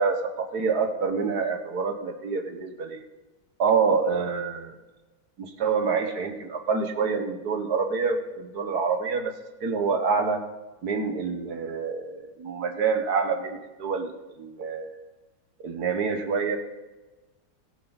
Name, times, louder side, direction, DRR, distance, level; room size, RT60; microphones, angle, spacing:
voice 1, 0.0-3.0 3.6-4.7 5.4-9.3 9.6-10.4 10.8-14.1 14.4-15.0 15.6-16.6, right 5 dB, 50° right, 5 dB, 1.6 m, -27 dB
21.0 x 7.5 x 4.1 m, 1.2 s
omnidirectional pair, 2.3 m